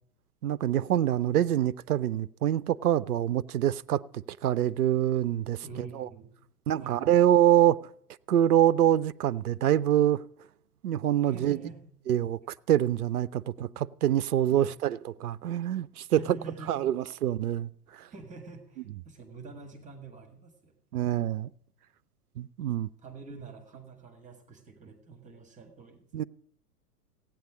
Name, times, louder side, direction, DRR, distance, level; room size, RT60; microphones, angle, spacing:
voice 1, 0.4-6.1 6.7-7.8 8.3-10.2 10.8-11.6 12.1-12.4 12.7-13.7 14.0-16.2 16.7-17.7 20.9-21.5 22.4-22.9 26.1-26.2, right 11 dB, 70° right, 0.6 m, -25 dB
voice 2, 5.6-6.3 6.8-7.1 11.2-11.9 14.5-14.7 16.1-17.0 18.1-20.7 23.0-26.0, right 4 dB, 15° right, 1.8 m, -46 dB
16.0 x 9.1 x 5.0 m
figure-of-eight pair, 100°, 46 cm